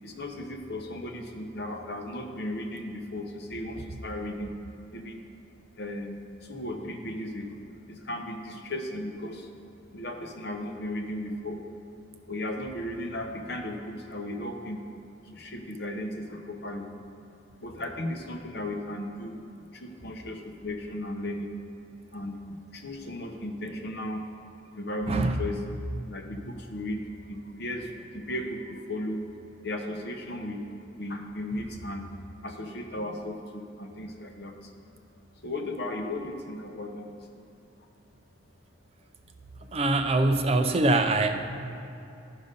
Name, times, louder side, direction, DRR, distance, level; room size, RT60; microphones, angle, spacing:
voice 1, 0.0-4.5 4.9-5.2 5.8-6.2 6.4-9.5 9.9-11.6 12.3-14.8 15.3-16.9 17.6-19.4 19.7-21.6 22.1-24.2 24.8-25.6 26.1-27.0 27.3-29.2 29.6-32.1 32.4-34.5 35.4-37.1, left 1 dB, 60° left, 3 dB, 0.9 m, -35 dB
voice 2, 39.7-41.3, right 2 dB, 30° right, 6 dB, 0.5 m, -23 dB
11.0 x 5.4 x 5.2 m, 2.6 s
head